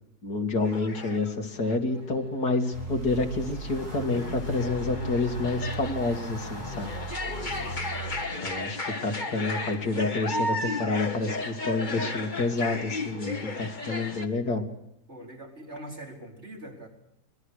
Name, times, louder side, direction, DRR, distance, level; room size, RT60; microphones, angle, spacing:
voice 1, 0.2-6.9 8.4-14.6, left 3 dB, 85° left, 3 dB, 3.1 m, -28 dB
sound 1, 0.6-1.3 1.6-2.0 3.3-14.3, left 2 dB, 30° left, 1.8 m, -34 dB
sound 2, 2.7-8.2, right 1 dB, 90° right, 7.5 m, -38 dB
voice 2, 7.3-7.8 15.1-16.9, right 1 dB, 45° right, 0 dB, 4.9 m, -43 dB
25.5 x 21.5 x 6.5 m, 0.80 s
omnidirectional pair, 1.7 m